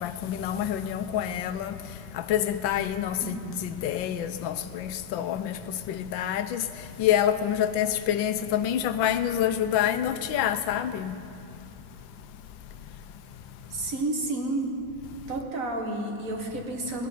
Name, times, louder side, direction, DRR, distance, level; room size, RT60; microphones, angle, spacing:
voice 1, 0.0-1.7 2.3-3.4 3.6-5.5 5.9-6.6 7.0-11.1, left 10 dB, 90° left, 11 dB, 1.4 m, -27 dB
voice 2, 3.2-3.6 13.7-14.7 15.3-17.1, right 2 dB, 50° right, 1 dB, 1.7 m, -31 dB
17.0 x 11.0 x 5.7 m, 2.7 s
omnidirectional pair, 2.0 m